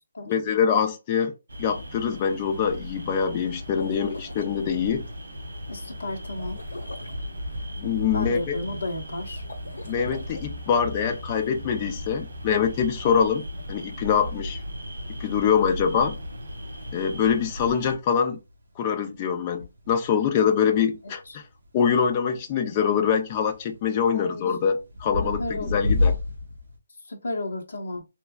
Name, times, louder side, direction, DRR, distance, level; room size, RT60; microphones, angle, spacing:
voice 1, 0.3-1.3 1.6-5.1 7.8-8.6 9.9-14.6 15.1-16.2 16.9-18.4 18.8-21.4 21.7-26.2, left 7 dB, 15° left, 0.3 m, -24 dB
sound 1, 1.5-18.0, equal, 60° right, 1.4 m, -36 dB
sound 2, 3.6-4.5 6.4-7.2 9.4-10.5, left 2 dB, 70° left, 1.1 m, -42 dB
voice 2, 3.8-4.2 5.7-6.6 8.1-9.4 21.3-21.4 24.1-24.5 25.2-25.8 27.0-28.1, left 2 dB, 45° left, 1.0 m, -33 dB
sound 3, 13.4-26.8, left 2 dB, 35° right, 1.0 m, -33 dB
3.3 x 3.1 x 2.3 m
hypercardioid pair, 180°, 0 cm